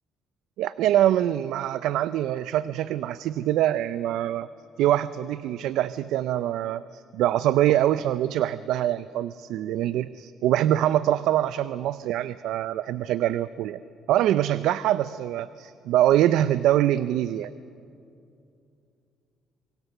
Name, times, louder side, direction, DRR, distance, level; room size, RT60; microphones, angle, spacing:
voice 1, 0.6-4.5 4.8-13.8 14.1-17.5, right 12 dB, 80° right, 15 dB, 0.5 m, -24 dB
25.0 x 23.5 x 6.7 m, 2.6 s
cardioid pair, 150°, 0 cm